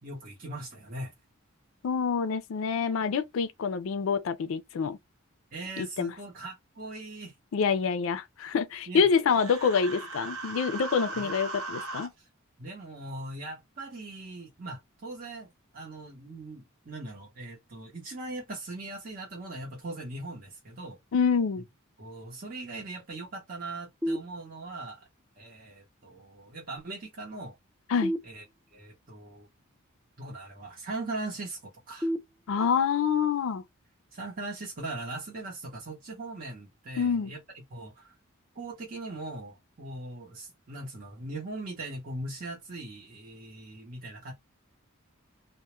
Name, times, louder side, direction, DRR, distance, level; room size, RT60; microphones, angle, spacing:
voice 1, 0.0-1.1 5.5-7.3 8.9-9.1 11.1-11.3 12.2-12.3 12.6-21.0 22.0-25.1 25.4-27.6 28.2-28.4 28.7-29.5 30.2-32.1 34.1-38.1 38.5-44.3, right 2 dB, 40° right, 0.8 m, -40 dB
voice 2, 1.8-5.0 5.8-6.1 7.5-12.1 21.1-21.6 27.9-28.1 32.5-33.6 37.0-37.3, left 6 dB, 65° left, 0.4 m, -26 dB
Human voice, 9.3-12.1, right 3 dB, 90° right, 0.9 m, -38 dB
sound 1, 24.0-25.0 28.0-29.0 32.0-33.0, equal, 10° right, 0.4 m, -34 dB
2.2 x 2.1 x 2.9 m
head